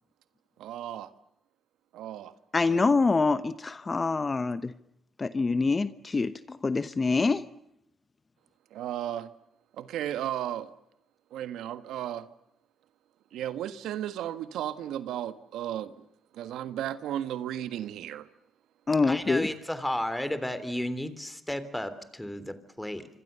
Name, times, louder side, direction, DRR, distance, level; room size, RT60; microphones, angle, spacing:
voice 1, 0.6-1.1 1.9-2.3 2.7-3.0 8.7-9.3 9.8-10.7 11.3-12.3 13.3-15.9 16.3-18.3, right 11 dB, 85° right, 1.5 m, -34 dB
voice 2, 2.5-4.7 5.2-7.4 18.9-19.5, left 4 dB, 30° left, 1.0 m, -25 dB
voice 3, 19.0-23.1, left 1 dB, 5° left, 3.5 m, -33 dB
26.5 x 25.0 x 6.9 m
cardioid pair, 90°, 0 cm